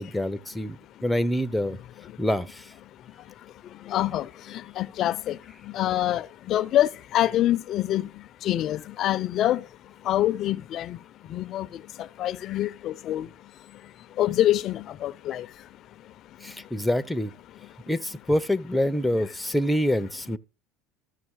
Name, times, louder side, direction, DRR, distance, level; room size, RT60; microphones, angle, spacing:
voice 1, 0.0-1.8 2.2-2.7 16.4-17.3 17.9-20.4, equal, 5° left, 0.7 m, -26 dB
voice 2, 3.9-4.3 4.8-5.4 5.7-8.1 8.4-9.6 10.1-11.0 11.3-11.7 12.2-13.3 14.2-15.4, left 13 dB, 50° left, 0.5 m, -25 dB
14.5 x 7.0 x 4.7 m
supercardioid pair, 120°, 0 cm